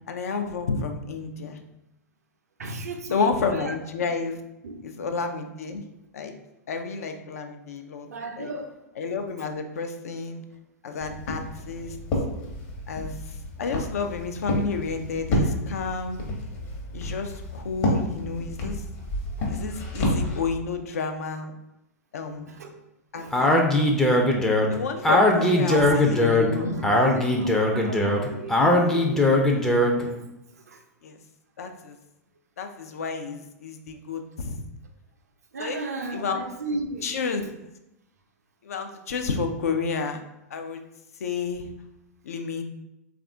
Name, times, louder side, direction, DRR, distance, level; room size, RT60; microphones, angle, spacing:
voice 1, 0.1-1.6 3.1-4.4 4.8-5.8 6.1-6.3 6.7-8.1 8.4-8.5 9.0-10.4 10.8-12.0 12.9-13.2 13.6-16.2 16.9-18.8 19.5-21.5 22.1-22.5 23.1-23.5 24.7-27.0 31.0-31.2 31.6-32.0 32.6-34.6 35.6-35.8 36.1-36.5 37.0-37.5 38.6-40.2 40.5-40.8 41.2-41.7 42.2-42.6, left 4 dB, 65° left, 7 dB, 0.4 m, -30 dB
voice 2, 2.6-3.7 4.6-4.8 8.0-8.8 19.4-19.5 22.3-22.7 23.1-23.4 25.3-29.1 29.6-29.7 30.7-30.8 35.5-37.2, right 3 dB, 70° right, 4 dB, 0.5 m, -35 dB
Walk footsteps, 11.0-20.4, left 1 dB, 45° left, 0.9 m, -30 dB
Speech, 23.3-30.1, left 1 dB, 5° left, 0.4 m, -20 dB
3.5 x 2.4 x 3.4 m, 0.92 s
figure-of-eight pair, 100°, 9 cm